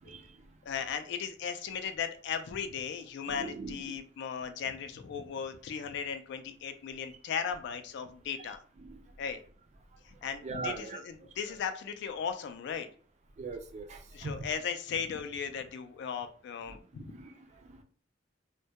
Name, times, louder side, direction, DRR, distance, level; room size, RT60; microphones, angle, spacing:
voice 1, 0.0-0.5 3.3-4.0 8.4-9.1 10.4-11.3 13.4-14.5 16.7-17.8, right 3 dB, 35° right, 5 dB, 0.4 m, -42 dB
voice 2, 0.6-8.6 9.2-9.4 10.0-12.9 14.1-17.1, left 7 dB, 65° left, 8 dB, 0.3 m, -37 dB
2.2 x 2.1 x 2.7 m, 0.43 s
head